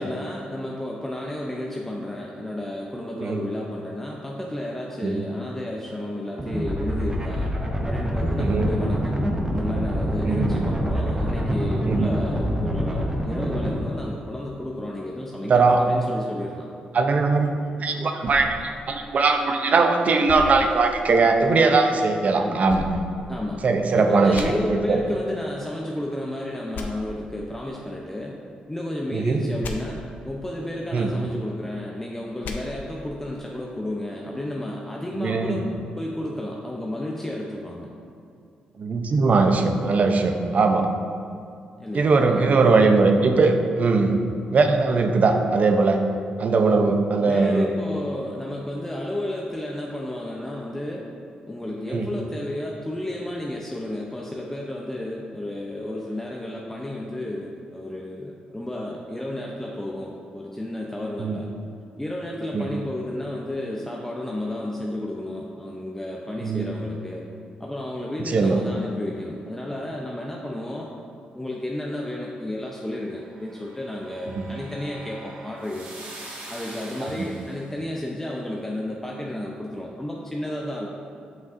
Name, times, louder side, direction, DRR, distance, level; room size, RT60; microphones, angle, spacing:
voice 1, 0.0-7.5 7.8-9.3 9.5-16.7 17.8-18.1 22.4-22.6 23.3-23.6 24.0-28.4 28.7-35.7 36.0-37.9 41.8-42.9 47.2-51.1 51.4-61.5 62.0-67.3 67.6-70.9 71.3-75.9 76.5-80.9, left 1 dB, 10° left, -2 dB, 0.6 m, -32 dB
sound 1, 6.4-13.7, equal, 20° right, 0.8 m, -25 dB
voice 2, 8.4-8.7 10.2-10.5 11.9-12.1 15.5-15.8 16.9-22.8 23.6-24.4 24.9-25.0 29.1-29.4 30.9-31.1 35.2-35.6 38.8-40.9 41.9-44.2 44.5-46.0 46.4-47.7 51.9-52.1 61.2-61.4 62.5-62.7 66.4-66.6 68.3-68.6 74.3-74.4, right 4 dB, 55° right, 5 dB, 0.6 m, -20 dB
sound 2, 18.2-19.7 20.3-21.5 22.7-23.8 24.3-24.5 26.7-26.9 29.6-29.7 32.4-32.6, left 5 dB, 75° left, 0.6 m, -36 dB
sound 3, 73.1-77.7, right 2 dB, 75° right, 1.5 m, -43 dB
7.3 x 5.8 x 2.6 m, 2.5 s
supercardioid pair, 60°, 3 cm